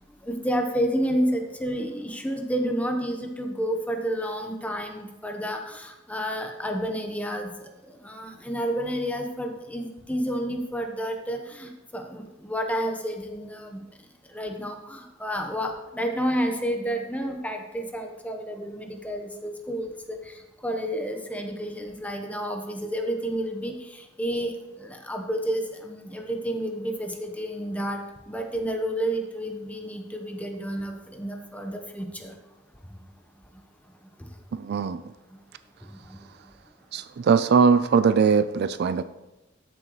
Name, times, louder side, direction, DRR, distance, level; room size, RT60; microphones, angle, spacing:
voice 1, 0.2-13.8 14.3-28.0 28.3-32.3 36.1-36.2, equal, 5° left, 4 dB, 1.0 m, -30 dB
voice 2, 34.5-35.0 36.9-39.0, right 5 dB, 55° right, 13 dB, 0.3 m, -21 dB
13.0 x 7.7 x 3.1 m, 0.99 s
head